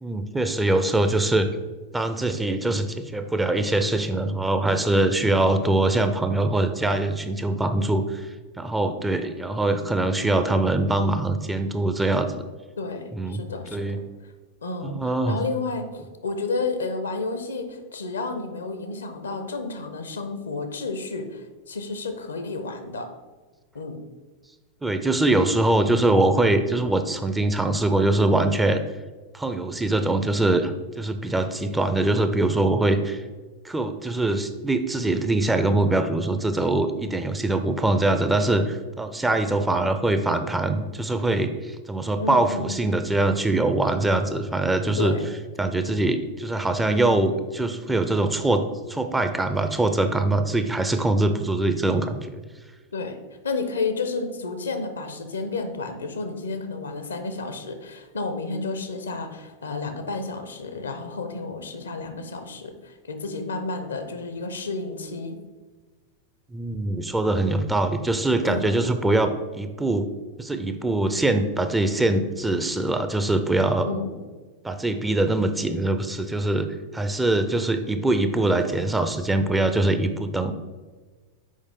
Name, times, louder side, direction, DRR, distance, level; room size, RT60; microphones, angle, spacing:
voice 1, 0.0-1.5 1.9-8.3 8.6-12.4 13.1-13.5 13.7-14.0 14.8-15.4 24.8-28.8 29.3-33.2 33.6-45.2 45.6-52.4 66.5-70.1 70.4-73.9 74.6-76.7 76.9-80.5, right 2 dB, 10° right, 8 dB, 0.4 m, -23 dB
voice 2, 12.8-14.0 14.6-23.1 23.7-24.0 42.2-42.8 45.0-45.2 52.9-53.2 53.4-65.4 68.4-68.8 73.8-74.1, left 3 dB, 70° left, 7 dB, 0.7 m, -31 dB
6.4 x 4.8 x 3.6 m, 1.3 s
figure-of-eight pair, 90°, 0 cm